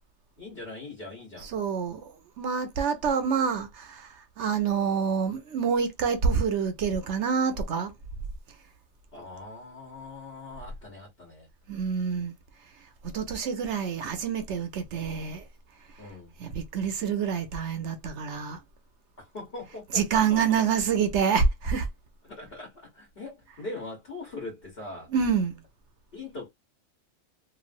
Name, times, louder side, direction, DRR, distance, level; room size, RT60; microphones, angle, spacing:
voice 1, 0.4-1.5 9.1-11.5 16.0-16.3 19.2-20.6 22.2-25.1 26.1-26.5, left 2 dB, 45° left, 1.2 m, -41 dB
voice 2, 1.4-4.1 4.4-7.9 11.7-12.3 13.1-15.4 16.4-18.6 19.9-21.9 25.1-25.6, right 6 dB, 65° right, 0.8 m, -27 dB
3.1 x 2.4 x 2.5 m
omnidirectional pair, 1.5 m